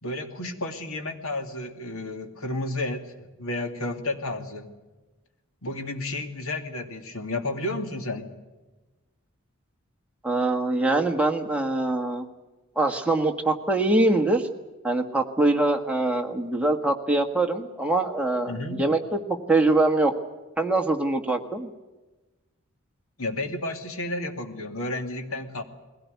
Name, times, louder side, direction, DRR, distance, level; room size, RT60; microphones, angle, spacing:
voice 1, 0.0-4.7 5.6-8.3 18.5-18.8 23.2-25.6, left 2 dB, 70° left, 6 dB, 2.5 m, -32 dB
voice 2, 10.2-12.2 12.7-14.5 14.8-18.5 18.8-20.1 20.6-21.7, right 2 dB, 5° right, 3 dB, 1.6 m, -23 dB
21.0 x 17.0 x 9.4 m, 1.2 s
head